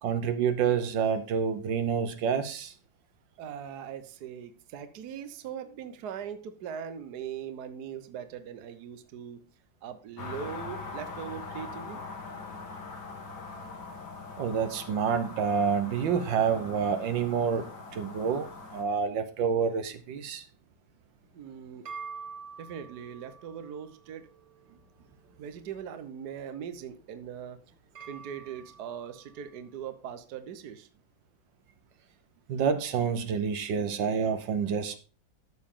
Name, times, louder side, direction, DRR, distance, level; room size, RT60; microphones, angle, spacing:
voice 1, 0.0-2.7 14.4-20.4 32.5-35.0, right 6 dB, 80° right, 1.6 m, -28 dB
voice 2, 3.4-9.5 9.8-12.0 21.3-21.9 22.6-24.3 25.4-27.6 28.1-30.9, right 8 dB, 60° right, 1.4 m, -40 dB
sound 1, 10.2-18.8, left 4 dB, 60° left, 2.3 m, -42 dB
sound 2, 21.2-29.7, right 5 dB, 40° right, 1.8 m, -49 dB
12.5 x 6.8 x 3.7 m
omnidirectional pair, 2.0 m